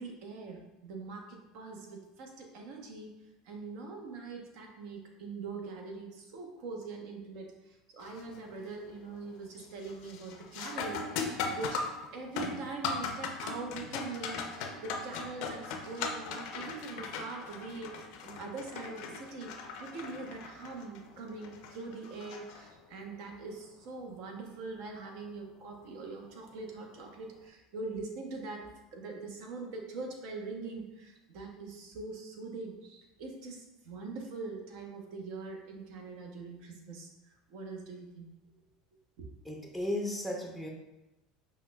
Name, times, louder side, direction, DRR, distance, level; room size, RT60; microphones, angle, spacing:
voice 1, 0.0-3.1 3.4-38.3 39.2-39.3, right 3 dB, 70° right, 2 dB, 0.7 m, -43 dB
sound 1, 8.0-8.4 8.8-9.2 9.6-23.1 25.6-25.7 26.5-26.8, left 4 dB, 70° left, 0.4 m, -39 dB
voice 2, 39.5-40.7, left 1 dB, 5° right, 0 dB, 0.5 m, -35 dB
5.7 x 2.1 x 2.2 m, 0.97 s
supercardioid pair, 95°, 0 cm